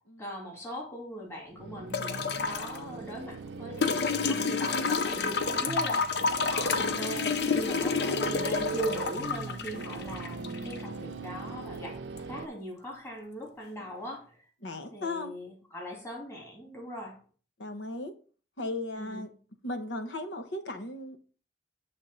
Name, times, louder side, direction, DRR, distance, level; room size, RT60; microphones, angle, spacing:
voice 1, 0.2-12.0 12.3-14.4 14.9-17.2 19.0-19.3, equal, 15° left, 2.2 m, -40 dB
sound 1, 1.5-12.5, right 4 dB, 75° right, 0.5 m, -40 dB
sound 2, 1.9-2.8 3.8-10.8 12.2-12.3, left 5 dB, 70° left, 0.6 m, -29 dB
voice 2, 14.6-15.3 17.6-18.1 18.6-19.3 19.6-21.2, left 2 dB, 90° left, 1.1 m, -36 dB
7.4 x 3.5 x 5.4 m
head